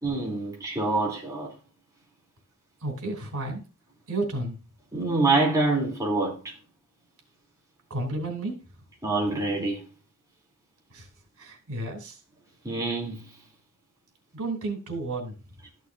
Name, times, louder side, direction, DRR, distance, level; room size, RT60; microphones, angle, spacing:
voice 1, 0.0-1.5 4.9-6.5 9.0-9.8 12.6-13.3, right 3 dB, 15° right, 3.3 m, -26 dB
voice 2, 2.8-3.6 4.1-4.6 7.9-8.6 10.9-11.1 11.4-12.2 14.3-15.3, right 2 dB, 75° right, 3.3 m, -32 dB
13.5 x 6.3 x 2.7 m
head